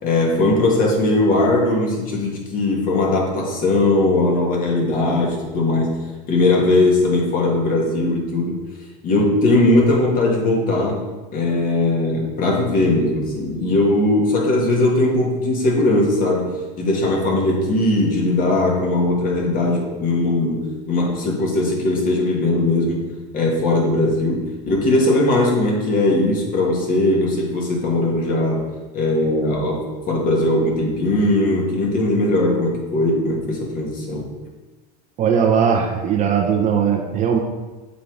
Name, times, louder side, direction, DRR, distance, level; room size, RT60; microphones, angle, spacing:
voice 1, 0.0-5.9 6.3-8.6 9.0-11.0 11.3-23.0 23.3-28.6 28.9-34.3, left 2 dB, 40° left, -1 dB, 1.9 m, -19 dB
voice 2, 35.2-37.4, right 7 dB, 35° right, 3 dB, 0.9 m, -18 dB
7.2 x 3.8 x 4.9 m, 1.2 s
supercardioid pair, 115°, 21 cm